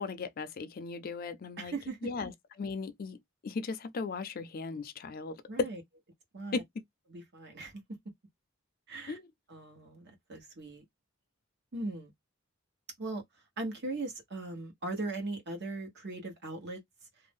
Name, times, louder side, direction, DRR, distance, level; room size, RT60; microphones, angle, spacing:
voice 1, 0.0-1.7 2.0-3.2 3.4-5.7 6.5-6.6 9.1-9.2, left 4 dB, 45° left, 0.4 m, -36 dB
voice 2, 1.6-2.0 5.5-5.8 6.3-6.6 7.1-7.8 8.9-9.2 9.5-10.8 11.7-12.1 13.0-13.2 13.6-16.8, right 2 dB, 55° right, 1.1 m, -39 dB
2.5 x 2.0 x 3.4 m
head